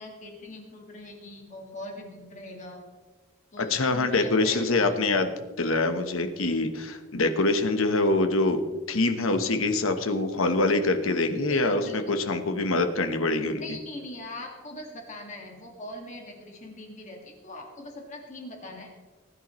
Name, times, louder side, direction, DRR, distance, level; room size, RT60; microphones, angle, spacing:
voice 1, 0.0-2.8 3.5-4.9 11.5-12.2 13.5-18.9, left 1 dB, 35° left, 1 dB, 2.0 m, -41 dB
voice 2, 3.6-5.3 5.6-8.6 8.9-13.6, left 2 dB, 90° left, 7 dB, 1.1 m, -25 dB
20.0 x 10.0 x 3.1 m, 1.3 s
head